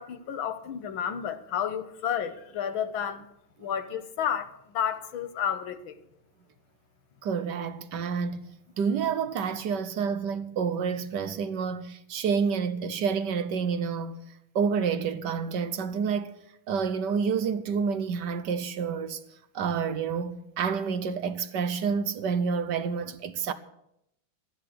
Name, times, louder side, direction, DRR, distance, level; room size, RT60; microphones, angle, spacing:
voice 1, 0.0-3.3 3.6-6.0, left 8 dB, 80° left, 1.9 m, -31 dB
voice 2, 7.2-8.5 8.8-14.2 14.5-16.3 16.7-19.2 19.5-23.5, right 6 dB, 65° right, 1.3 m, -29 dB
13.5 x 10.0 x 7.8 m
omnidirectional pair, 2.1 m